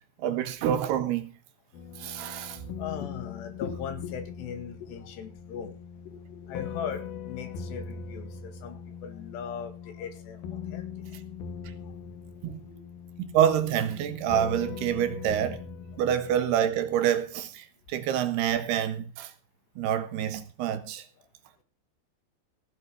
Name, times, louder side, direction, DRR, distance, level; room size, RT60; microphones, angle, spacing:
voice 1, 0.2-1.3 2.0-2.6 12.4-12.6 13.2-15.6 16.0-19.3 19.8-21.0, right 10 dB, 75° right, 3.3 m, -27 dB
sound 1, 1.7-17.2, left 6 dB, 65° left, 3.2 m, -41 dB
voice 2, 2.5-5.8 6.1-11.2 11.8-11.9 12.5-12.8 14.0-14.2 15.9-16.0, left 7 dB, 85° left, 4.3 m, -39 dB
16.5 x 8.2 x 6.2 m
omnidirectional pair, 4.8 m